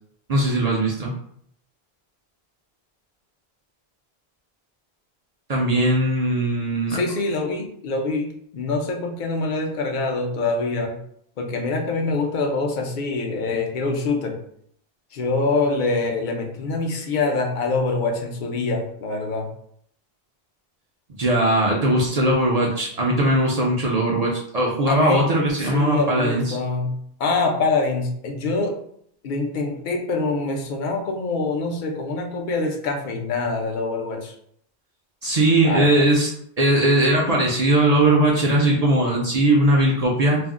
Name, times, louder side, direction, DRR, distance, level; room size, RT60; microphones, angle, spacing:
voice 1, 0.3-1.1 5.5-7.0 21.2-26.6 35.2-36.3 36.6-40.4, right 1 dB, 50° right, -3 dB, 0.5 m, -19 dB
voice 2, 6.9-11.0 11.4-14.4 15.1-19.5 24.9-25.2 25.6-28.8 29.2-34.3 35.6-36.0, left 3 dB, 60° left, 2 dB, 0.6 m, -25 dB
2.5 x 2.0 x 3.5 m, 0.67 s
omnidirectional pair, 1.0 m